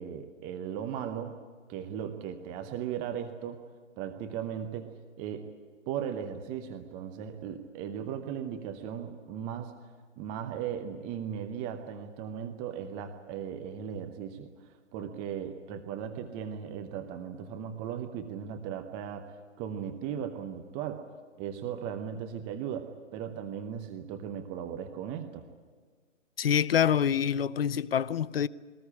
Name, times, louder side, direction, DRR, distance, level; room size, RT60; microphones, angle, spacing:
voice 1, 0.0-1.4 1.7-3.6 4.0-5.5 5.9-9.7 10.2-21.1 21.4-25.4, right 8 dB, 15° right, 0.7 m, -37 dB
voice 2, 26.4-28.5, left 8 dB, 50° left, 0.7 m, -26 dB
22.5 x 19.0 x 9.9 m
figure-of-eight pair, 135°, 38 cm